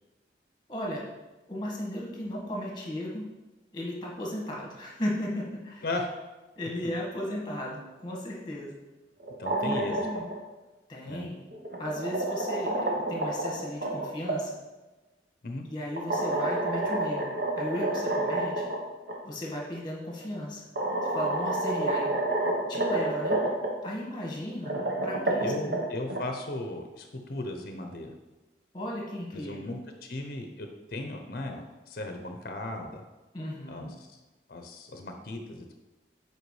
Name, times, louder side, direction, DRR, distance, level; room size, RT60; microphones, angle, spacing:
voice 1, 0.7-1.1 1.5-3.3 3.7-5.9 6.5-8.7 9.6-10.3 10.9-11.4 11.8-14.6 15.7-18.7 19.2-20.6 21.0-22.1 22.7-23.4 23.8-25.8 28.7-29.7 33.3-33.9, left 1 dB, 25° left, -2 dB, 1.5 m, -35 dB
sound 1, 9.2-10.3 11.5-14.4 16.0-18.8 19.1-19.2 20.2-20.3 20.8-23.7 24.5-26.2, right 2 dB, 65° right, 1.1 m, -29 dB
voice 2, 9.4-10.0 11.1-11.3 15.4-15.6 25.4-28.1 29.3-33.0 33.7-34.1 34.5-35.7, left 2 dB, 55° left, 4 dB, 0.6 m, -36 dB
8.1 x 4.5 x 3.2 m, 1.1 s
head